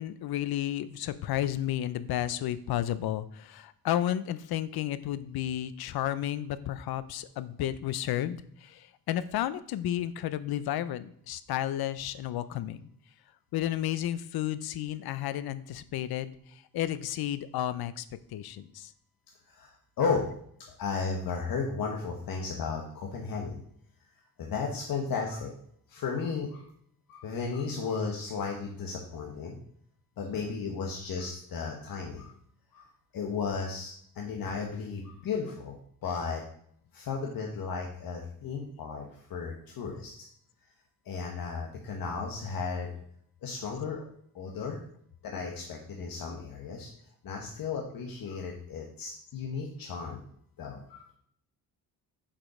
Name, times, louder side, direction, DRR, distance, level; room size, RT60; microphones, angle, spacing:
voice 1, 0.0-12.9 13.5-18.1 18.3-18.9, left 12 dB, 90° left, 15 dB, 0.6 m, -32 dB
voice 2, 19.5-20.3 20.8-23.6 24.4-25.5 25.9-26.7 27.1-29.6 30.2-32.3 32.7-35.7 36.0-36.4 36.9-40.1 41.0-42.9 43.4-44.0 44.3-44.8 45.2-46.9 47.2-50.2 50.6-51.1, left 5 dB, 70° left, 0 dB, 1.3 m, -34 dB
7.3 x 5.1 x 4.9 m, 0.66 s
cardioid pair, 125°, 36 cm